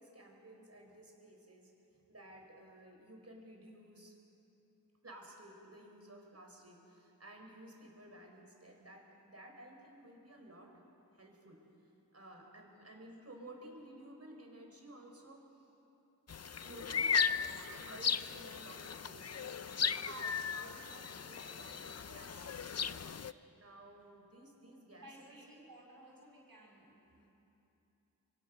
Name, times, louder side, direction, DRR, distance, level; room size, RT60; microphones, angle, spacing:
voice 1, 0.0-1.7 2.1-4.2 5.0-10.7 11.1-11.6 12.1-15.7 16.6-19.6 20.0-22.5 22.8-23.1 23.5-25.4, right 1 dB, 45° right, 1 dB, 5.2 m, -54 dB
voice 2, 12.7-13.1 23.4-23.5 24.9-27.3, right 1 dB, 75° right, -4 dB, 6.9 m, -58 dB
sound 1, 16.3-23.3, left 6 dB, 45° left, 0.6 m, -36 dB
26.0 x 23.0 x 6.6 m, 2.9 s
wide cardioid pair, 55°, 35 cm